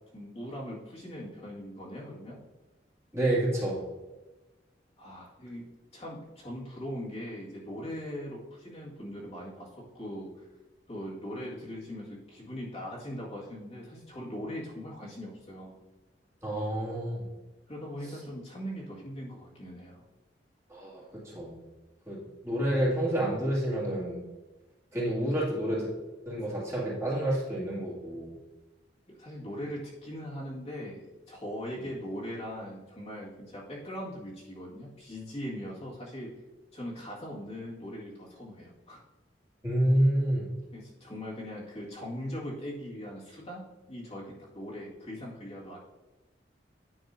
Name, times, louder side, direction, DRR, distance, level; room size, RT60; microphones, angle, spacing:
voice 1, 0.1-2.4 5.0-5.7 5.9-10.5 10.9-15.8 17.7-20.0 29.1-36.3 36.7-39.0 40.7-45.8, equal, 35° left, -5 dB, 1.9 m, -40 dB
voice 2, 3.1-3.8 16.4-17.3 20.7-21.5 22.1-24.3 24.9-25.9 26.3-28.3 39.6-40.5, right 1 dB, 15° right, -7 dB, 2.2 m, -29 dB
10.0 x 6.0 x 2.6 m, 1.1 s
head